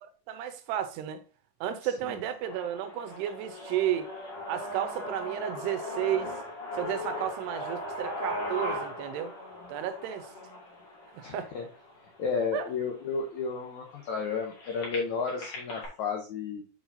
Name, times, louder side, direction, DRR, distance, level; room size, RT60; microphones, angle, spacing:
voice 1, 0.0-1.2 1.6-4.1 4.5-6.3 6.7-9.3 9.7-10.3 11.1-11.5 12.5-12.7, right 11 dB, 85° right, 2.9 m, -33 dB
sound 1, 2.4-12.4 13.0-13.1 13.4-15.9, left 1 dB, 40° left, 2.9 m, -38 dB
voice 2, 11.2-11.7 12.2-16.6, left 5 dB, 75° left, 1.7 m, -32 dB
7.3 x 6.5 x 2.8 m
omnidirectional pair, 4.7 m